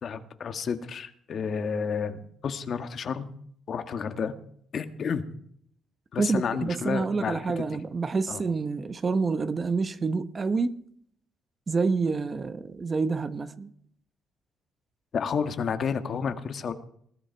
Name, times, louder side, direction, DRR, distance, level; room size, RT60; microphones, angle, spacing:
voice 1, 0.0-3.3 3.7-4.3 4.7-5.3 6.1-7.6 8.3-8.4 15.1-16.7, left 6 dB, 55° left, 1.6 m, -31 dB
voice 2, 6.2-10.7 11.7-13.7, right 4 dB, 35° right, 1.1 m, -27 dB
20.0 x 12.5 x 4.7 m
cardioid pair, 90°, 0 cm